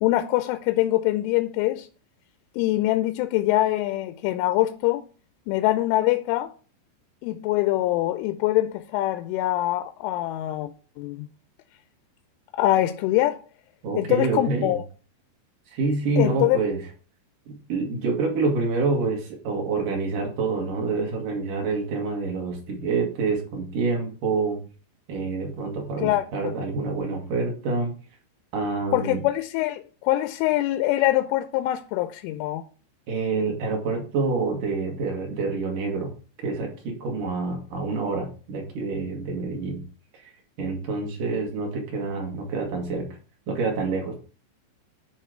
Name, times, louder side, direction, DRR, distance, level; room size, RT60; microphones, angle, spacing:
voice 1, 0.0-1.9 2.6-5.0 5.5-6.5 7.2-10.7 11.0-11.3 12.6-13.4 14.0-14.8 16.2-16.6 26.0-26.6 28.9-32.6, left 15 dB, 90° left, 3.1 m, -24 dB
voice 2, 13.8-14.8 15.7-16.8 17.5-24.6 25.1-27.9 28.5-29.2 33.1-36.1 36.4-39.8 40.6-43.2 43.5-44.1, right 4 dB, 55° right, 3.0 m, -27 dB
11.0 x 3.6 x 5.0 m
omnidirectional pair, 5.5 m